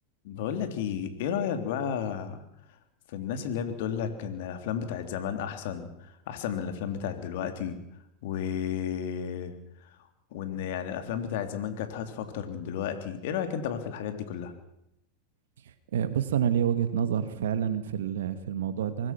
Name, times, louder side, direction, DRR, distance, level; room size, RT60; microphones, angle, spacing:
voice 1, 0.2-2.4 3.1-7.8 8.2-9.5 10.3-14.5, left 8 dB, 65° left, 7 dB, 3.3 m, -32 dB
voice 2, 15.6-19.1, right 9 dB, 75° right, 11 dB, 2.0 m, -28 dB
25.0 x 20.0 x 6.1 m, 0.82 s
hypercardioid pair, 95°, 0 cm